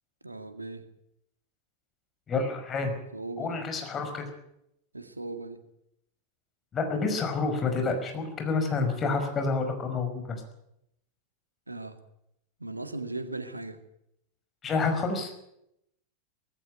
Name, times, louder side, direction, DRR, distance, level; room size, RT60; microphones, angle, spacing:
voice 1, 0.2-0.8 3.1-3.6 4.9-5.6 11.7-12.0 12.6-13.8, right 2 dB, 80° right, 9 dB, 2.0 m, -38 dB
voice 2, 2.3-2.9 3.4-4.3 6.7-10.4 14.6-15.3, left 4 dB, 25° left, 5 dB, 5.2 m, -28 dB
18.5 x 15.5 x 9.4 m, 0.80 s
figure-of-eight pair, 90°, 0 cm